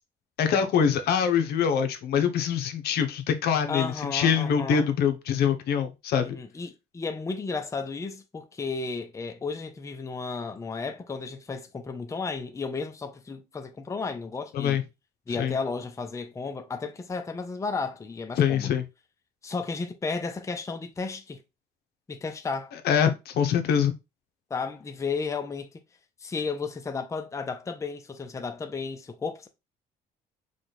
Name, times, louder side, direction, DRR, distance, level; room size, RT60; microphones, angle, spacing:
voice 1, 0.4-6.3 14.5-14.8 15.4-15.5 18.4-18.8 22.8-23.9, left 7 dB, 70° left, 0.9 m, -24 dB
voice 2, 3.7-4.9 6.2-14.8 15.3-18.8 19.4-21.4 22.1-22.7 24.5-25.7 26.2-29.5, left 4 dB, 20° left, 0.6 m, -33 dB
4.9 x 2.4 x 4.1 m
cardioid pair, 110°, 17 cm